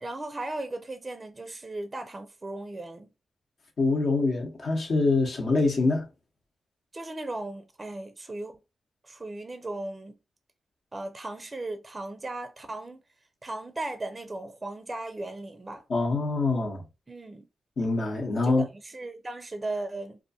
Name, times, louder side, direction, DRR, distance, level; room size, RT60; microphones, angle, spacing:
voice 1, 0.0-3.1 6.9-8.6 9.0-10.1 10.9-13.0 13.4-15.8 17.1-17.5 18.4-20.2, right 2 dB, 30° right, 0.4 m, -37 dB
voice 2, 3.8-6.1 15.9-16.8 17.8-18.7, left 3 dB, 60° left, 0.9 m, -25 dB
2.4 x 2.2 x 2.7 m
supercardioid pair, 45°, 0 cm